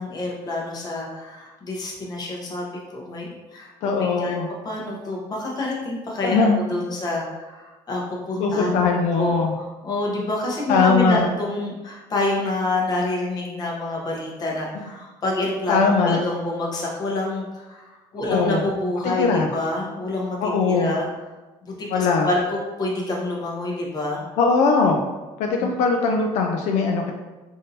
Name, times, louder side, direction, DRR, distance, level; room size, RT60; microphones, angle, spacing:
voice 1, 0.0-4.4 4.6-8.8 9.2-21.1 21.6-24.2 25.6-25.7, left 2 dB, 35° left, -2 dB, 0.9 m, -27 dB
voice 2, 3.8-4.5 6.2-6.6 8.4-9.5 10.7-11.3 15.7-16.2 18.2-18.6 19.0-19.5 20.4-20.9 21.9-22.3 24.4-25.0 25.4-27.1, left 4 dB, 80° left, 2 dB, 0.4 m, -20 dB
3.5 x 2.6 x 2.7 m, 1.2 s
cardioid pair, 125°, 11 cm